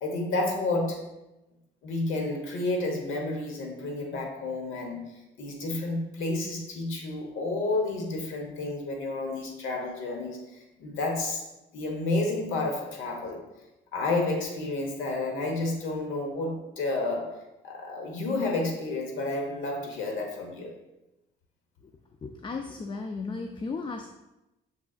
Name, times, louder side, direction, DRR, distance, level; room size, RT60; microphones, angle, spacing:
voice 1, 0.0-1.1 1.8-5.1 5.4-11.4 11.7-13.4 13.9-17.4 17.6-20.8, left 2 dB, 90° left, 1 dB, 1.0 m, -30 dB
voice 2, 22.2-24.1, left 4 dB, 25° left, 5 dB, 0.3 m, -35 dB
5.9 x 3.7 x 2.4 m, 0.96 s
cardioid pair, 90°, 20 cm